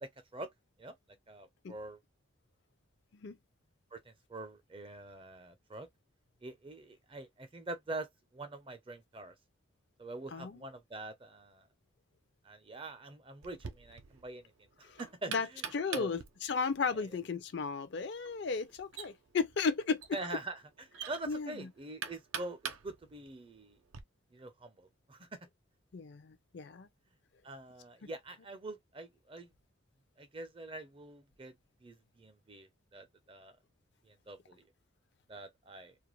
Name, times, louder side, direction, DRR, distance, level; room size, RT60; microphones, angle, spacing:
voice 1, 0.0-0.5 0.8-0.9 1.3-2.0 3.9-5.9 6.4-9.3 10.0-11.7 12.4-14.5 14.8-16.1 16.9-17.2 20.1-23.8 24.3-25.5 27.4-29.5 30.2-31.5 31.8-33.5 34.0-34.7 35.3-36.0, right 2 dB, 25° right, 0.5 m, -45 dB
voice 2, 10.3-10.6 14.9-15.0 15.3-15.5 15.7-20.0 21.3-21.5 25.9-26.9 28.0-28.1, left 5 dB, 55° left, 0.5 m, -34 dB
Knock, 13.4-24.0, right 7 dB, 80° right, 0.5 m, -46 dB
2.3 x 2.2 x 3.0 m
head